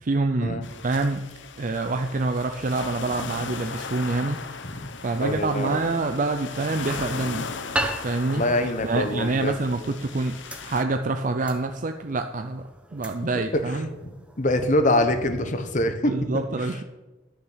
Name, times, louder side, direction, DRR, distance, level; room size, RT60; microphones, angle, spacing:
voice 1, 0.0-1.3 1.6-4.4 5.0-7.5 8.0-8.4 8.8-13.9 16.1-16.8, right 3 dB, 40° right, 6 dB, 0.5 m, -26 dB
sound 1, 0.6-10.8, left 5 dB, 65° left, 0.8 m, -37 dB
voice 2, 5.2-5.8 8.3-9.6 13.3-13.6 14.0-14.1 14.4-16.1, left 1 dB, 40° left, 8 dB, 1.0 m, -24 dB
sound 2, 5.5-15.6, right 1 dB, 5° right, 0.9 m, -38 dB
11.5 x 6.5 x 7.3 m, 1.2 s
head